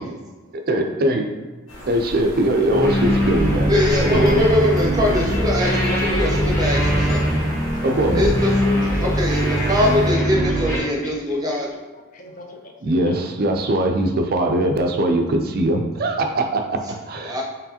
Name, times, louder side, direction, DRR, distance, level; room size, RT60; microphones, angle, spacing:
voice 1, 0.7-1.3 1.8-3.7 4.0-4.4 7.8-8.3 12.8-17.4, right 1 dB, 45° right, 4 dB, 0.4 m, -21 dB
sound 1, 1.7-10.1, equal, 70° left, 1.2 m, -33 dB
sound 2, 2.7-10.8, equal, 10° left, 0.9 m, -21 dB
voice 2, 3.7-7.3 8.1-8.5 9.0-11.7 17.2-17.4, left 1 dB, 15° right, -2 dB, 0.8 m, -21 dB
voice 3, 5.1-5.5 5.9-6.9 7.4-7.9 8.6-9.3 10.1-11.8 12.1-13.2, left 3 dB, 40° left, 2 dB, 0.5 m, -36 dB
4.5 x 3.1 x 2.8 m, 1.3 s
head